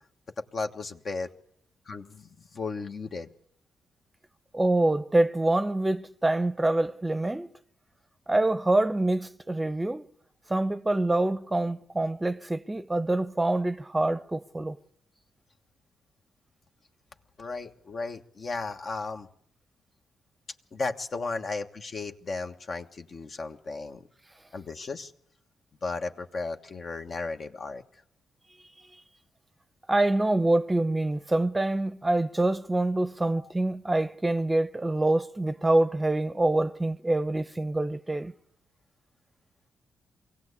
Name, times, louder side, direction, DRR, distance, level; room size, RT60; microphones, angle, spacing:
voice 1, 0.5-1.3 1.9-2.3 2.5-3.3 17.4-19.3 20.7-24.0 24.5-25.1 25.8-27.8 33.2-33.3, left 3 dB, 55° left, 1.4 m, -35 dB
voice 2, 4.5-7.5 8.3-10.1 10.5-14.8 29.9-38.3, right 2 dB, 20° right, 0.8 m, -25 dB
23.5 x 16.5 x 8.4 m
supercardioid pair, 55°, 0 cm